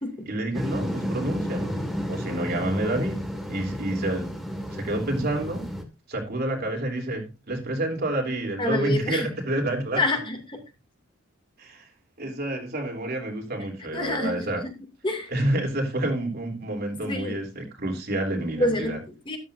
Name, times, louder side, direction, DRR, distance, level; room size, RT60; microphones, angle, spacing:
voice 1, 0.3-1.8 2.1-4.3 4.7-5.7 6.1-10.0 11.6-11.9 12.2-14.6 15.3-19.0, right 1 dB, 50° right, 3.3 m, -28 dB
sound 1, 0.5-5.8, equal, ahead, 1.9 m, -32 dB
voice 2, 8.6-9.3 10.0-10.6 13.6-14.7 15.0-15.3 17.0-17.4 18.6-19.4, left 1 dB, 25° left, 2.6 m, -28 dB
13.5 x 12.0 x 2.7 m
head